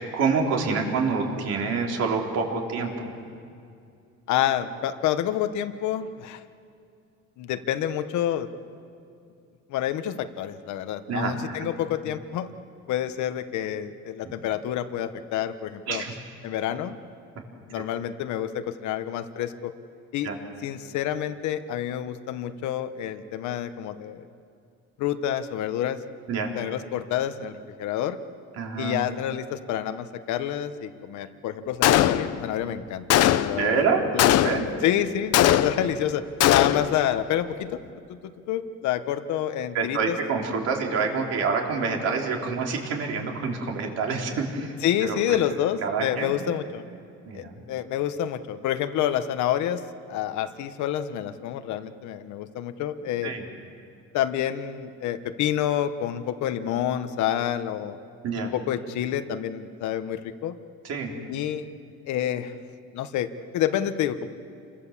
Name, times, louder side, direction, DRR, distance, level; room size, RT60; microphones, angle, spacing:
voice 1, 0.1-3.1 11.1-11.7 12.0-12.1 15.9-16.1 20.2-20.4 26.3-26.5 28.5-29.0 33.5-34.0 34.4-34.7 39.7-44.7 45.0-45.2 45.8-46.3 47.3-47.6 53.2-53.4 58.2-58.5 60.8-61.1, right 5 dB, 55° right, 0 dB, 3.9 m, -27 dB
voice 2, 4.3-6.4 7.4-8.5 9.7-12.5 12.9-16.0 16.4-17.0 17.7-19.7 20.1-20.3 20.6-24.3 25.0-26.0 26.6-28.2 28.8-33.0 33.4-33.9 34.1-34.3 34.8-36.2 36.5-37.8 38.1-40.2 44.8-46.8 47.3-49.8 50.1-53.3 54.1-58.0 58.5-60.6 61.3-61.7 62.1-62.5 62.9-63.3 63.5-64.3, left 11 dB, 70° left, 10 dB, 1.3 m, -28 dB
Gunshot gunfire, 31.8-32.5 33.1-33.7 34.2-34.8 35.3-36.0 36.4-37.0, left 12 dB, 55° left, 0.8 m, -20 dB
29.5 x 24.0 x 7.4 m, 2.4 s
cardioid pair, 175°, 30 cm